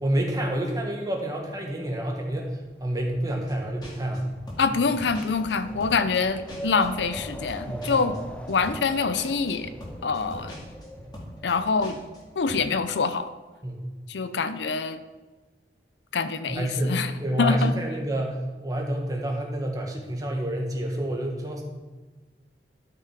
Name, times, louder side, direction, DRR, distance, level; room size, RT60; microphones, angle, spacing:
voice 1, 0.0-4.3 7.6-8.1 13.6-13.9 16.4-21.6, right 1 dB, 20° right, 0 dB, 1.6 m, -28 dB
Wind, 2.3-12.4, right 1 dB, 5° left, 0.5 m, -42 dB
sound 1, 3.5-3.6 3.8-6.9 7.1-12.2 12.5-12.7, left 1 dB, 25° left, 2.2 m, -42 dB
voice 2, 4.6-8.2 8.5-9.7 10.0-10.6 11.4-12.0 12.3-13.3 14.1-15.0 16.1-17.1 17.4-17.7, left 4 dB, 80° left, 11 dB, 0.6 m, -25 dB
12.5 x 5.8 x 4.7 m, 1.3 s
head